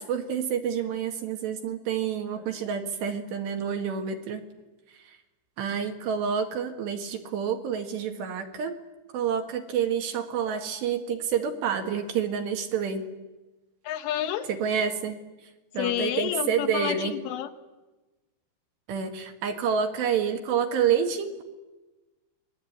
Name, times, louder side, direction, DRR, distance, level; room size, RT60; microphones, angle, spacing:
voice 1, 0.0-4.4 5.0-5.1 5.6-8.8 9.1-13.0 14.5-15.2 15.7-17.1 18.9-21.4, right 7 dB, 65° right, 5 dB, 3.4 m, -28 dB
voice 2, 13.8-14.5 15.8-17.5, left 10 dB, 75° left, 8 dB, 3.4 m, -29 dB
27.5 x 20.5 x 9.3 m, 1.1 s
omnidirectional pair, 6.0 m